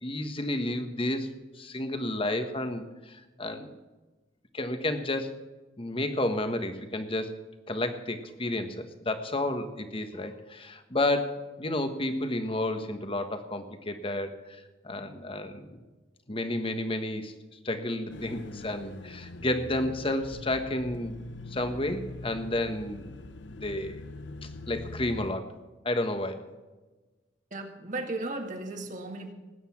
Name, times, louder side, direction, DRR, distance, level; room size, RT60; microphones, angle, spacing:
voice 1, 0.0-1.3 1.5-3.8 4.5-5.4 5.8-7.3 7.7-15.8 16.3-17.4 17.6-21.1 21.5-23.1 23.5-24.0 24.7-25.5 25.8-26.5, left 1 dB, 30° left, 8 dB, 1.4 m, -31 dB
sound 1, 18.1-25.3, left 2 dB, 70° left, 0.8 m, -43 dB
voice 2, 27.5-29.3, right 2 dB, 45° right, 3 dB, 2.0 m, -35 dB
19.5 x 9.5 x 6.0 m, 1.2 s
head